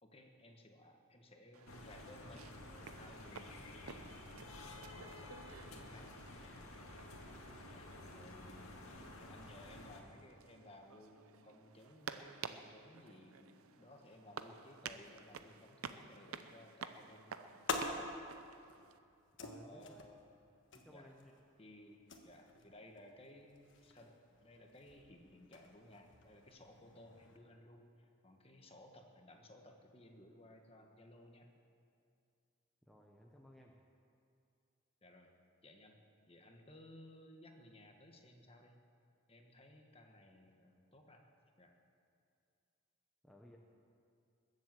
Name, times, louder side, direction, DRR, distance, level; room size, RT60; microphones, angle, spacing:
voice 1, 0.0-4.3 4.9-6.1 7.7-17.9 19.6-20.2 20.9-21.1 21.6-31.5 35.0-35.3 35.6-36.0 36.3-38.8 39.3-41.2 41.6-41.7, left 1 dB, 25° left, 3 dB, 1.3 m, -59 dB
sound 1, 1.5-19.0, right 6 dB, 90° right, 0.7 m, -53 dB
sound 2, 1.7-10.0, left 2 dB, 85° left, 1.8 m, -52 dB
sound 3, 16.9-27.4, left 3 dB, 55° left, 1.4 m, -48 dB
voice 2, 19.4-20.1 20.7-21.3 32.8-33.7 43.2-43.6, equal, ahead, -1 dB, 0.8 m, -59 dB
21.0 x 7.7 x 7.6 m, 2.4 s
head